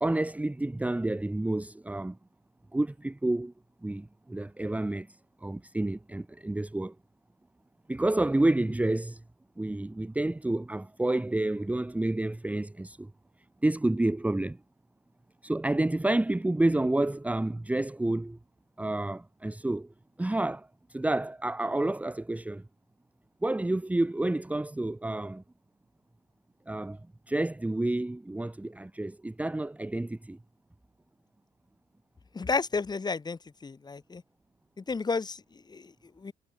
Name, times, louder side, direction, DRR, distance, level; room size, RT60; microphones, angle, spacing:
voice 1, 0.0-2.2 2.7-3.5 3.8-5.1 5.4-6.9 7.9-9.2 9.6-13.1 13.6-14.6 15.4-18.4 18.8-19.9 20.2-22.6 23.4-25.4 26.7-27.0 27.3-30.4, right 2 dB, 10° right, 1.7 m, -29 dB
voice 2, 32.3-34.2 34.8-36.3, left 4 dB, 25° left, 6.0 m, -32 dB
cardioid pair, 110°, 17 cm